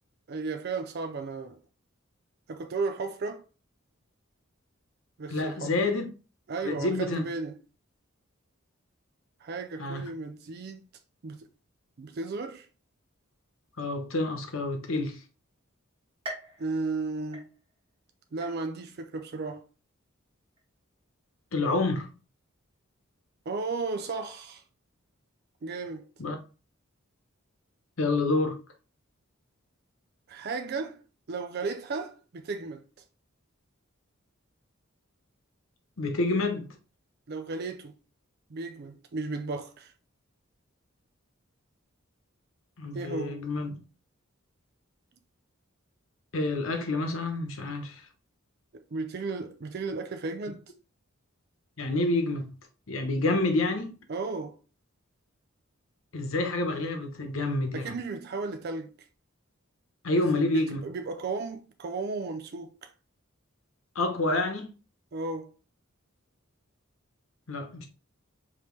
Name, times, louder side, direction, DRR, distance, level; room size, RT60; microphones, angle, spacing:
voice 1, 0.3-1.6 2.5-3.4 5.2-5.8 6.5-7.6 9.4-10.8 11.2-11.5 12.0-12.7 16.6-17.5 18.3-19.6 23.5-24.6 25.6-26.1 30.3-31.0 31.3-32.9 37.3-37.9 38.5-39.9 42.9-43.4 48.7-50.6 53.1-53.3 54.1-54.6 57.7-59.0 60.1-62.9 65.1-65.5, right 3 dB, 50° right, 0.4 m, -34 dB
voice 2, 5.3-6.1 6.6-7.3 9.8-10.0 13.8-15.2 21.5-22.1 26.2-26.4 28.0-28.6 36.0-36.7 42.8-43.8 46.3-48.0 51.8-52.5 52.9-53.9 56.1-57.9 60.0-60.8 63.9-64.8 67.5-67.9, left 2 dB, 75° left, 1.0 m, -28 dB
sound 1, 16.2-18.0 18.4-19.0 19.5-19.6 20.6-20.7, right 1 dB, 25° right, 1.8 m, -44 dB
5.1 x 2.9 x 3.1 m
head